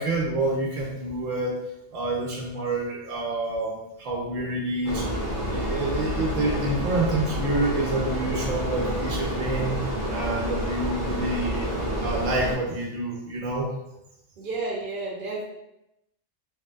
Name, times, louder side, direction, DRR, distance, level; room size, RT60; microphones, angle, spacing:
voice 1, 0.0-1.6 1.9-5.0 5.5-9.8 10.1-13.7, right 2 dB, 85° right, -1 dB, 1.1 m, -28 dB
sound 1, 4.8-12.5, equal, 45° left, 0.8 m, -29 dB
voice 2, 14.4-15.4, right 3 dB, 50° right, -3 dB, 0.9 m, -31 dB
3.2 x 2.7 x 2.3 m, 0.87 s
omnidirectional pair, 1.3 m